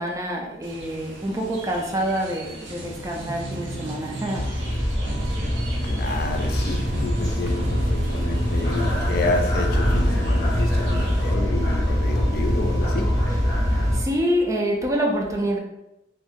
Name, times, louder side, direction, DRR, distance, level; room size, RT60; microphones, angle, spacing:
voice 1, 0.0-4.8 13.9-15.6, equal, 15° right, 0.4 m, -26 dB
sound 1, 0.6-11.3, right 1 dB, 90° right, 0.7 m, -36 dB
sound 2, 4.3-14.0, equal, 20° left, 0.9 m, -23 dB
voice 2, 5.8-14.0, left 3 dB, 55° left, 0.3 m, -30 dB
2.7 x 2.5 x 3.5 m
head